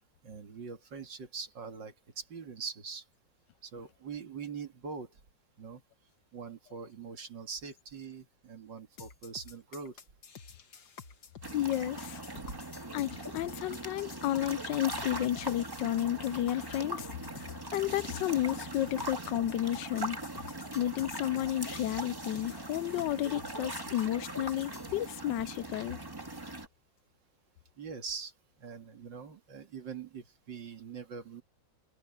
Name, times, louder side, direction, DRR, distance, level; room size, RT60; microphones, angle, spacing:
voice 1, 0.2-3.0 3.6-5.2 5.6-5.8 6.3-10.0 12.4-12.6 27.8-28.3 28.6-31.4, right 5 dB, 70° right, 2.8 m, -43 dB
sound 1, 9.0-24.9, left 5 dB, 60° left, 2.2 m, -50 dB
sound 2, 11.4-26.7, right 2 dB, 10° right, 1.9 m, -41 dB
voice 2, 11.5-12.2 12.9-17.1 17.3-20.2 20.7-26.0, left 13 dB, 75° left, 1.2 m, -32 dB
omnidirectional pair, 2.0 m